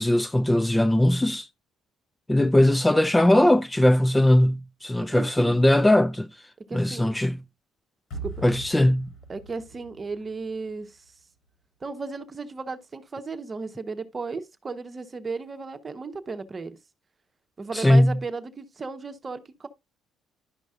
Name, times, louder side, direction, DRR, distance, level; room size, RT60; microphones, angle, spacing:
voice 1, 0.0-1.5 2.3-6.3 6.7-7.4 8.4-9.1 17.7-18.2, left 1 dB, 10° left, 0.3 m, -20 dB
voice 2, 5.1-5.6 6.7-7.1 8.2-8.3 9.3-11.0 11.8-16.8 17.6-19.7, right 4 dB, 35° right, 0.9 m, -35 dB
sound 1, 8.1-11.2, right 3 dB, 75° left, 4.3 m, -41 dB
11.0 x 5.3 x 2.4 m
supercardioid pair, 60°, 0 cm